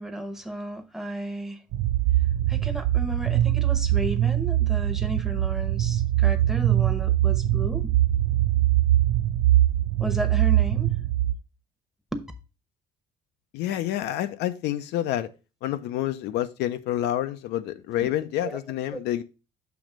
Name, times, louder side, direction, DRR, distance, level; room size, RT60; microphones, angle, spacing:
voice 1, 0.0-1.6 2.5-8.0 10.0-11.1 12.1-12.2 18.0-18.1 18.4-18.6 18.9-19.0, right 1 dB, ahead, 1.0 m, -33 dB
sound 1, 1.7-11.3, right 13 dB, 80° right, 0.4 m, -22 dB
voice 2, 13.5-15.3 15.6-19.2, left 13 dB, 85° left, 0.7 m, -28 dB
7.0 x 3.1 x 6.1 m
cardioid pair, 110°, 17 cm